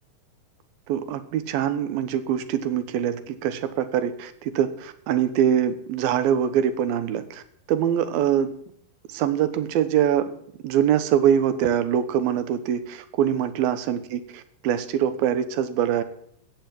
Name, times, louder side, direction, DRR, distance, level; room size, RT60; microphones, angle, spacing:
voice 1, 0.9-7.4 7.7-8.5 9.1-10.3 10.6-16.0, right 9 dB, 85° right, 11 dB, 2.8 m, -23 dB
15.0 x 5.7 x 9.0 m, 0.65 s
omnidirectional pair, 4.1 m